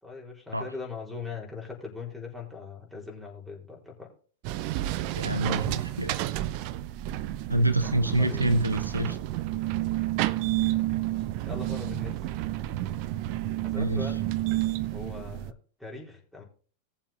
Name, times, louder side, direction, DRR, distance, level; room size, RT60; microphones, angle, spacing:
voice 1, 0.0-4.1 8.2-8.5 10.8-10.9 11.1-12.2 13.6-14.3 14.9-15.5 15.8-16.4, left 4 dB, 5° left, -3 dB, 4.2 m, -40 dB
sound 1, 4.4-15.5, right 15 dB, 45° right, 0.6 m, -30 dB
voice 2, 5.2-6.2 7.5-9.2 13.8-14.1, right 1 dB, 85° right, 9 dB, 1.1 m, -26 dB
19.0 x 7.4 x 2.8 m, 0.42 s
figure-of-eight pair, 90°, 0 cm